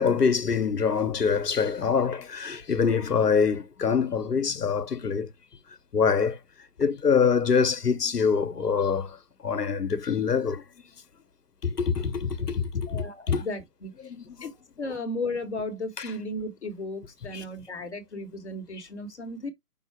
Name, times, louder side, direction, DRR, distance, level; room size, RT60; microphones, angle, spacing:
voice 1, 0.0-5.3 5.9-6.4 6.8-9.2 9.4-10.6 11.6-13.4 14.0-14.3 16.0-16.1 17.3-17.4, left 6 dB, 80° left, 0.9 m, -25 dB
voice 2, 12.9-14.1 14.4-19.5, left 2 dB, 45° left, 0.9 m, -35 dB
5.5 x 2.0 x 4.6 m
figure-of-eight pair, 145°, 47 cm